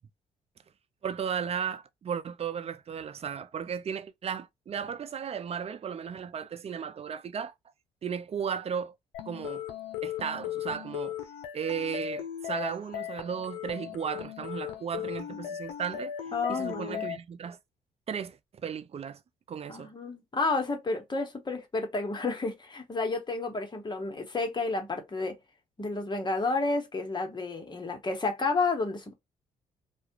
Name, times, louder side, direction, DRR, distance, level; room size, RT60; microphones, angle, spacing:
voice 1, 1.0-7.5 8.0-8.9 9.3-9.7 10.0-11.2 11.5-16.1 16.5-17.6 18.1-18.4 18.6-19.2 19.5-19.9, right 7 dB, 40° right, 0.5 m, -35 dB
sound 1, 9.1-17.2, left 11 dB, 85° left, 0.5 m, -37 dB
voice 2, 16.3-17.1 19.7-25.3 25.8-29.1, left 3 dB, 25° left, 1.1 m, -31 dB
2.4 x 2.2 x 2.9 m
supercardioid pair, 60°, 16 cm